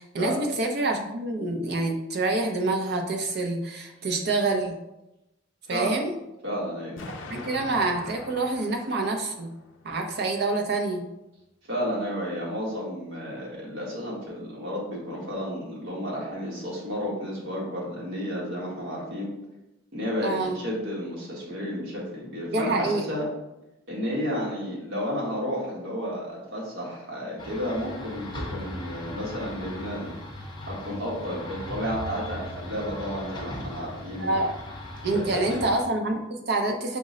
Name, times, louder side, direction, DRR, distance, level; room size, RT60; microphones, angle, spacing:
voice 1, 0.0-4.8 5.7-6.1 7.3-9.5 9.8-11.1 20.2-20.6 22.5-23.1 34.2-34.5 35.0-37.0, right 2 dB, 55° right, 2 dB, 0.6 m, -27 dB
voice 2, 6.4-7.0 11.7-19.3 19.9-23.3 23.9-30.1 30.6-34.4 35.3-35.7, equal, 75° right, -4 dB, 1.3 m, -32 dB
Explosion, 7.0-10.0, left 3 dB, 75° left, 0.4 m, -42 dB
sound 1, 27.4-35.8, left 1 dB, 25° left, 0.6 m, -38 dB
5.0 x 2.1 x 3.7 m, 0.93 s
head